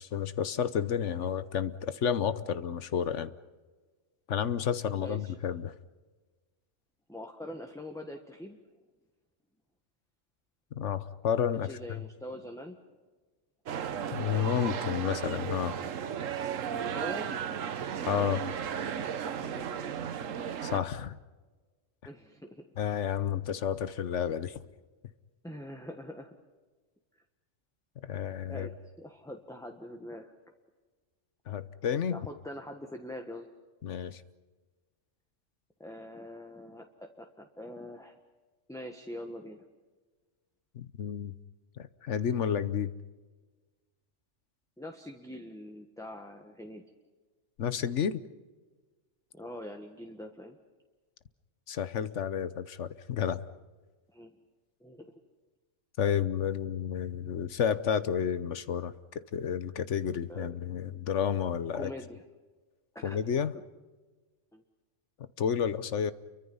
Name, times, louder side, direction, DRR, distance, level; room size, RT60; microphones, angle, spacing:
voice 1, 0.0-3.3 4.3-5.7 10.7-11.7 14.1-15.8 18.0-18.5 20.6-21.2 22.8-24.6 28.0-28.7 31.5-32.3 33.8-34.2 40.7-41.4 41.8-42.9 47.6-48.2 51.7-53.4 56.0-61.9 63.0-63.5 65.4-66.1, left 8 dB, 70° left, 14 dB, 1.2 m, -31 dB
voice 2, 5.0-5.3 7.1-8.6 11.5-12.8 16.8-17.4 19.4-20.0 22.0-22.7 25.4-26.4 27.1-27.2 28.5-30.3 32.1-33.5 35.8-38.2 38.7-39.6 44.8-46.8 49.3-50.6 54.1-54.3 54.8-55.1 60.3-60.5 61.7-62.2 62.9-63.2 64.5-64.6, left 1 dB, 5° left, 3 dB, 1.3 m, -44 dB
sound 1, 13.7-20.8, right 8 dB, 85° right, 1.3 m, -35 dB
29.5 x 24.0 x 5.6 m, 1.3 s
omnidirectional pair, 1.3 m